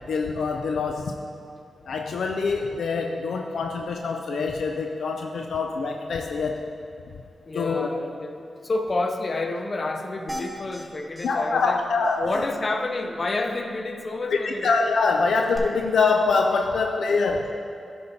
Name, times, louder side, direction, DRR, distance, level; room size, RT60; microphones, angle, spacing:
voice 1, 0.1-1.2 1.9-6.7 7.5-7.9 11.2-12.3 14.3-17.5, left 4 dB, 80° left, 3 dB, 0.4 m, -24 dB
voice 2, 7.5-11.8 12.2-14.7, left 2 dB, 50° left, 5 dB, 0.7 m, -29 dB
sound 1, 10.3-10.8 11.2-11.3 11.6-11.7 12.0-12.2 15.5-15.6, equal, 10° right, 1.7 m, -35 dB
10.5 x 5.4 x 4.0 m, 2.6 s
cardioid pair, 50°, 0 cm